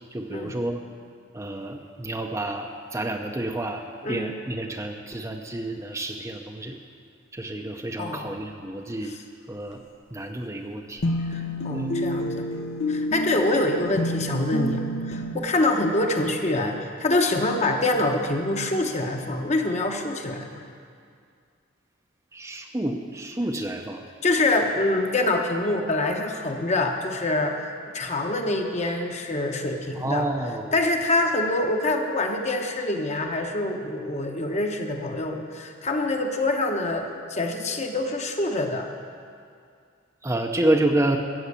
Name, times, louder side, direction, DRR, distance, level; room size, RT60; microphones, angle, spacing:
voice 1, 0.1-0.8 1.3-6.8 7.3-9.1 9.5-9.8 10.1-11.4 11.7-11.9 22.3-24.0 30.0-30.8 40.2-41.2, right 1 dB, 15° right, 3 dB, 0.6 m, -29 dB
voice 2, 4.0-4.3 8.0-8.3 11.3-12.5 12.9-20.6 24.2-27.6 27.9-30.2 30.7-38.9, left 2 dB, 35° left, 3 dB, 1.0 m, -25 dB
sound 1, 11.0-15.4, equal, 75° left, 0.9 m, -28 dB
14.0 x 7.1 x 8.3 m, 2.3 s
head